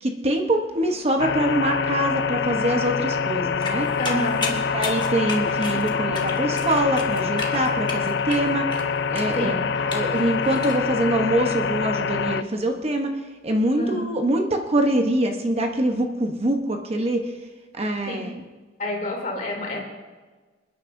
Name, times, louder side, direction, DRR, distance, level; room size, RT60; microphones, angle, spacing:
voice 1, 0.0-3.9 4.7-8.7 9.1-9.5 9.9-13.1 13.4-17.2 17.7-18.3, right 1 dB, 35° right, 3 dB, 0.9 m, -24 dB
sound 1, 0.7-10.5, left 1 dB, 75° left, 3.3 m, -42 dB
sound 2, 1.2-12.4, left 6 dB, 60° left, 0.4 m, -25 dB
sound 3, 3.6-10.8, left 3 dB, 25° left, 1.4 m, -33 dB
voice 2, 4.0-4.5 9.3-9.7 13.8-14.0 18.1-18.3 18.8-19.8, left 1 dB, 45° left, -1 dB, 3.0 m, -28 dB
26.5 x 10.0 x 2.6 m, 1.3 s
head